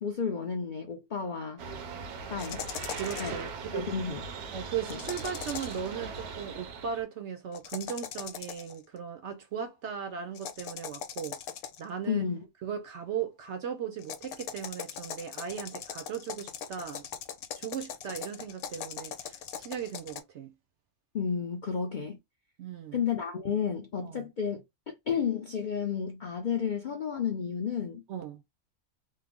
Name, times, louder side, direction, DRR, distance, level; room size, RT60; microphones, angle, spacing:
voice 1, 0.0-1.6 2.3-2.7 3.2-3.4 3.7-4.2 4.9-5.0 12.1-12.5 21.1-22.2 22.9-24.6 25.1-28.0, left 6 dB, 60° left, 0.5 m, -31 dB
sound 1, 1.6-7.0, right 5 dB, 85° right, 1.2 m, -40 dB
sound 2, 2.4-3.4 4.9-5.9 7.5-8.8 10.3-11.9 14.0-20.2, left 8 dB, 85° left, 1.1 m, -40 dB
voice 2, 3.0-3.9 4.5-11.4 11.8-12.3 12.6-17.0 17.6-20.5 22.6-23.0 24.0-24.3 28.1-28.4, right 8 dB, 65° right, 0.7 m, -37 dB
3.2 x 2.0 x 3.4 m
omnidirectional pair, 1.5 m